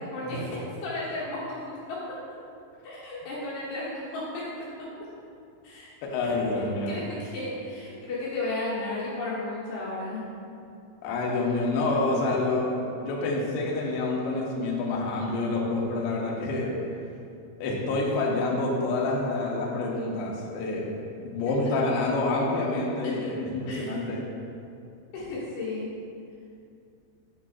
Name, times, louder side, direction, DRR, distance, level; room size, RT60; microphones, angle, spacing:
voice 1, 0.1-2.2 2.8-4.5 4.8-4.9 5.6-5.9 6.2-6.3 6.9-10.2 21.7-21.8 23.0-23.3 23.7-24.1 25.1-25.9, left 2 dB, 65° left, -8 dB, 2.8 m, -34 dB
voice 2, 6.0-7.0 11.0-16.8 17.6-24.2, left 2 dB, 90° left, -2 dB, 2.2 m, -28 dB
8.5 x 4.8 x 2.4 m, 2.5 s
omnidirectional pair, 5.7 m